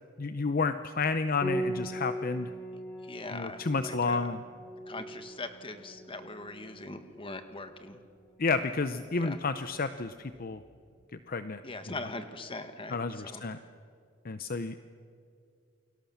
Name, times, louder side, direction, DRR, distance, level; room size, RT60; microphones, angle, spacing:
voice 1, 0.2-2.5 3.3-4.4 8.4-10.6 11.1-11.6 11.9-12.0 12.9-13.6 14.2-14.8, left 4 dB, 45° left, 10 dB, 0.7 m, -31 dB
Piano, 1.4-10.7, right 1 dB, 10° left, 3.3 m, -41 dB
voice 2, 3.0-4.3 4.9-8.0 9.2-9.4 11.6-13.4, left 2 dB, 25° left, 8 dB, 1.7 m, -41 dB
29.0 x 23.0 x 7.2 m, 2.3 s
head